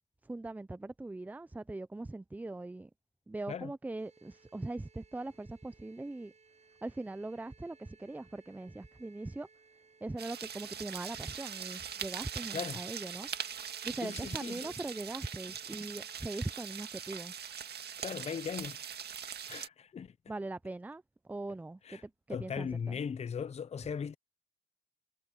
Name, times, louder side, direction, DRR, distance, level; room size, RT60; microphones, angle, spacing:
voice 1, 0.2-2.9 3.3-6.3 6.8-9.5 10.0-13.3 13.8-17.3 20.3-23.0, right 2 dB, 10° right, 0.4 m, -41 dB
sound 1, 4.0-16.7, right 4 dB, 35° right, 7.0 m, -64 dB
sound 2, 10.2-19.7, right 8 dB, 55° right, 1.9 m, -42 dB
voice 2, 14.0-14.7 18.0-18.8 19.5-20.1 21.8-22.0 22.3-24.1, left 7 dB, 35° left, 0.6 m, -38 dB
cardioid pair, 90°, 20 cm